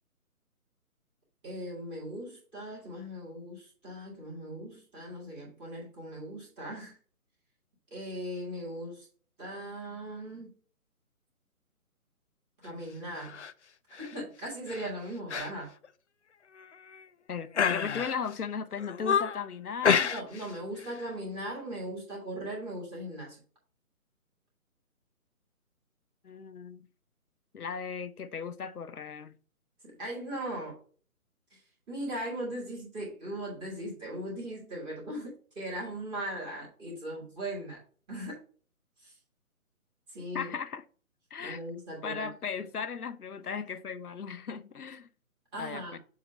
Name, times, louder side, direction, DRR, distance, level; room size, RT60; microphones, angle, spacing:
voice 1, 1.4-7.0 7.9-9.1 9.4-10.6 12.6-13.4 14.0-15.7 20.0-23.4 29.8-30.8 31.5-37.8 38.1-38.4 39.0-39.2 40.1-40.5 41.4-42.3 45.5-46.0, right 1 dB, 10° right, 2.1 m, -39 dB
sound 1, 13.2-13.5 13.9-14.2 14.7-14.9 15.3-15.5 15.8-15.9 16.6-17.1 17.5-18.3 18.8-19.4 19.8-20.5 20.8-21.0, left 7 dB, 55° left, 0.5 m, -29 dB
voice 2, 17.3-20.1 26.2-26.8 27.5-29.4 40.3-40.8 41.3-41.6 42.0-45.1 45.6-46.0, left 6 dB, 85° left, 0.7 m, -37 dB
7.2 x 2.9 x 5.1 m
figure-of-eight pair, 150°, 44 cm